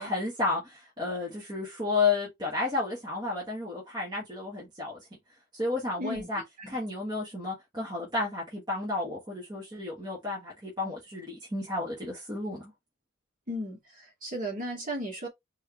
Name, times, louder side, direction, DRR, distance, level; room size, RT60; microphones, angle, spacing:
voice 1, 0.0-5.1 5.5-12.7, left 3 dB, 20° right, 1.5 m, -32 dB
voice 2, 6.0-6.3 6.6-6.8 13.5-15.3, equal, 40° right, 2.4 m, -35 dB
4.7 x 3.0 x 3.3 m
head